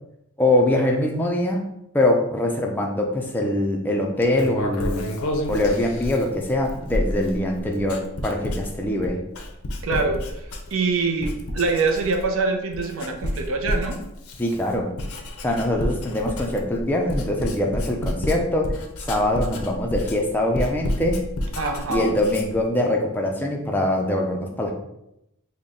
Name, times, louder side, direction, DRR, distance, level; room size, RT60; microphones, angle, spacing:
voice 1, 0.4-5.1 5.5-9.2 14.4-14.9 15.4-18.8 19.1-21.2 21.9-24.7, left 1 dB, 10° left, 0 dB, 0.4 m, -23 dB
Writing, 4.2-10.9 11.2-12.4 12.7-22.7, left 1 dB, 80° left, 0.6 m, -30 dB
voice 2, 9.8-14.0 21.6-22.1, right 3 dB, 65° right, 3 dB, 0.5 m, -24 dB
3.8 x 2.1 x 3.6 m, 0.83 s
head